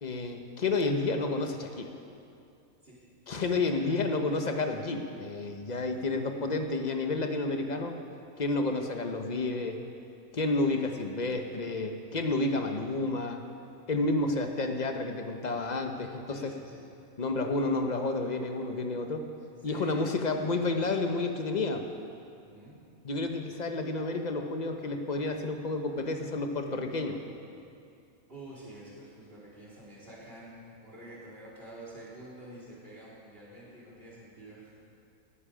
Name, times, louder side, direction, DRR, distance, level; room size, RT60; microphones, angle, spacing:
voice 1, 0.0-1.9 3.3-8.0 8.4-9.8 10.3-13.4 13.9-16.5 17.2-19.2 19.6-21.8 23.0-27.2, left 2 dB, 30° left, 5 dB, 1.0 m, -30 dB
voice 2, 3.3-3.9 5.6-5.9 10.7-10.9 16.3-16.8 19.4-20.9 22.4-22.8 28.3-34.8, right 1 dB, 40° right, -7 dB, 4.1 m, -49 dB
18.5 x 11.0 x 5.0 m, 2.5 s
omnidirectional pair, 1.6 m